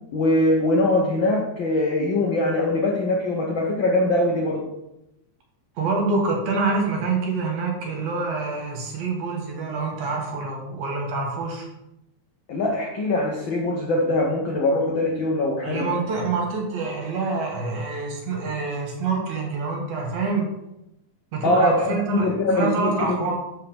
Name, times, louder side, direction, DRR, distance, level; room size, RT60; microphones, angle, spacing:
voice 1, 0.1-4.7 12.5-15.9 21.4-23.2, left 1 dB, 75° left, 0 dB, 1.1 m, -22 dB
voice 2, 5.8-11.7 15.6-20.5 21.3-23.3, right 4 dB, 65° right, 1 dB, 2.8 m, -26 dB
12.5 x 5.6 x 3.6 m, 0.88 s
omnidirectional pair, 3.7 m